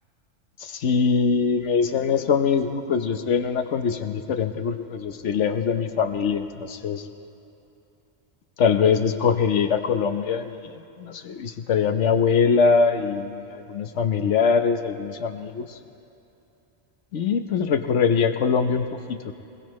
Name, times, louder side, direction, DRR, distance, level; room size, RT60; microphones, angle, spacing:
voice 1, 0.6-7.0 8.6-10.7 11.0-15.7 17.1-19.3, left 6 dB, 85° left, 8 dB, 1.2 m, -23 dB
22.0 x 20.5 x 3.1 m, 2.8 s
omnidirectional pair, 1.2 m